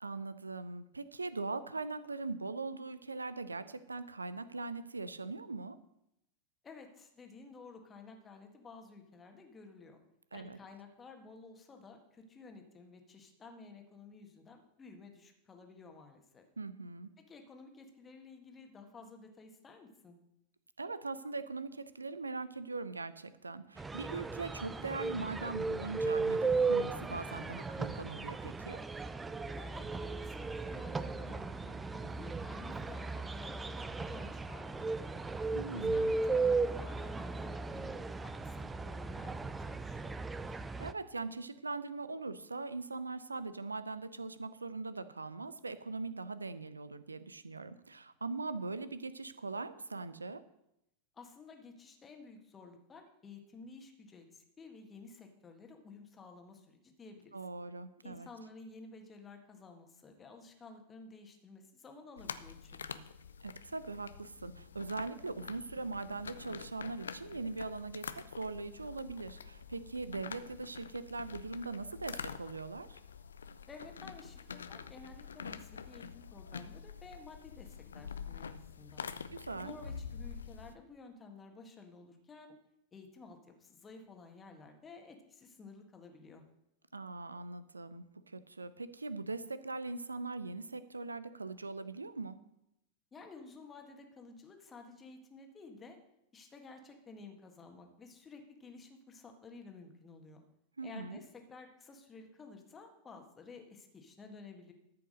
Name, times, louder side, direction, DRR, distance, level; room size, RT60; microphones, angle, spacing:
voice 1, 0.0-5.8 10.3-10.6 16.6-17.1 20.8-28.8 35.5-36.1 40.5-50.4 57.3-58.3 63.4-73.0 79.3-79.7 86.9-92.4 100.8-101.2, right 3 dB, 80° right, 15 dB, 0.6 m, -41 dB
voice 2, 6.6-10.0 10.3-16.4 17.2-20.2 29.5-35.2 35.6-40.1 51.1-57.3 58.0-63.0 73.7-79.0 79.6-82.6 82.9-86.4 93.1-96.0 96.3-100.4 100.8-104.7, left 3 dB, 20° left, 4 dB, 1.7 m, -53 dB
sound 1, 23.8-40.9, right 4 dB, 15° right, 0.5 m, -36 dB
sound 2, 62.2-80.7, left 6 dB, 70° left, 0.5 m, -47 dB
13.0 x 5.8 x 6.5 m, 0.83 s
figure-of-eight pair, 90°, 0 cm